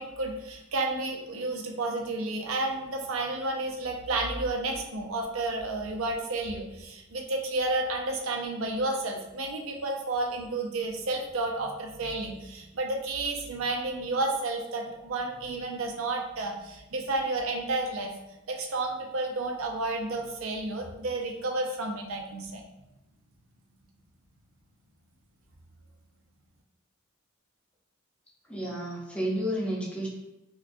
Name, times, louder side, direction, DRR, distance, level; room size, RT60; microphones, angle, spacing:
voice 1, 0.0-18.1 18.5-22.6, right 2 dB, 85° right, 1 dB, 0.6 m, -31 dB
voice 2, 28.5-30.1, equal, 5° left, -4 dB, 0.7 m, -31 dB
4.6 x 2.2 x 2.7 m, 0.94 s
head